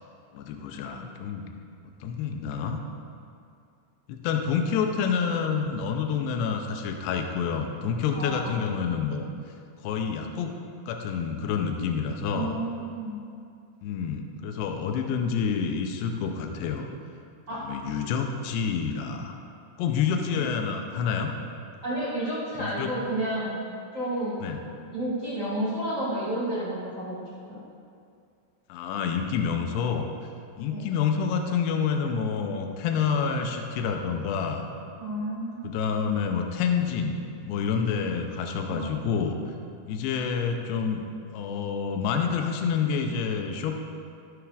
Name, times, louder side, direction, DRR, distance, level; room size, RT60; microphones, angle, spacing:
voice 1, 0.3-1.5 2.0-2.8 4.1-9.3 9.8-10.5 10.9-12.6 13.8-16.9 17.6-19.4 19.8-21.3 22.6-22.9 24.4-24.6 28.7-30.1 30.6-34.7 35.7-39.5 39.9-41.1 41.3-43.8, left 6 dB, 85° left, 4 dB, 2.6 m, -28 dB
voice 2, 8.1-8.6 12.3-13.2 17.5-17.6 20.3-20.4 21.8-23.5 23.9-24.4 24.9-27.6 30.7-30.8 35.0-35.7 38.6-38.9 39.8-39.9, right 1 dB, 35° right, -10 dB, 1.2 m, -31 dB
13.0 x 9.4 x 2.5 m, 2.4 s
omnidirectional pair, 4.9 m